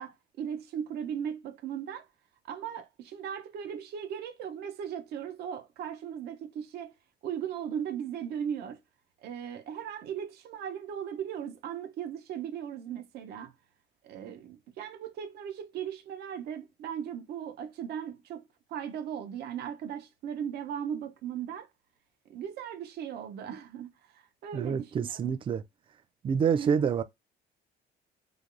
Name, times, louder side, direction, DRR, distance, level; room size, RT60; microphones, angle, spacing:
voice 1, 0.0-2.1 2.4-6.9 7.2-8.8 9.2-13.5 14.0-18.4 18.7-21.7 22.3-25.3 26.6-26.9, right 8 dB, 70° right, 0.6 m, -37 dB
voice 2, 24.5-25.6 26.2-27.0, right 7 dB, 30° right, 0.3 m, -27 dB
3.3 x 2.2 x 2.5 m
cardioid pair, 110°, 17 cm